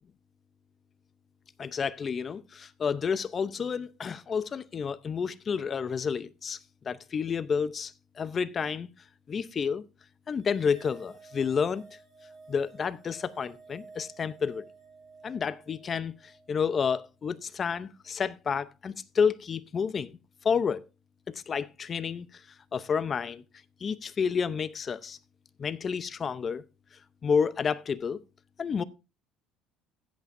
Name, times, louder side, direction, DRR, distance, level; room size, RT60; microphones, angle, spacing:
voice 1, 1.6-6.6 6.8-8.9 9.3-9.8 10.3-11.8 12.5-14.6 15.2-20.2 20.4-20.9 21.3-22.4 22.7-23.4 23.8-25.2 25.6-26.6 27.2-28.2 28.6-28.8, left 6 dB, 30° left, 0.6 m, -30 dB
sound 1, 10.4-17.0, right 4 dB, 30° right, 2.9 m, -53 dB
15.5 x 8.3 x 2.6 m
cardioid pair, 140°, 0 cm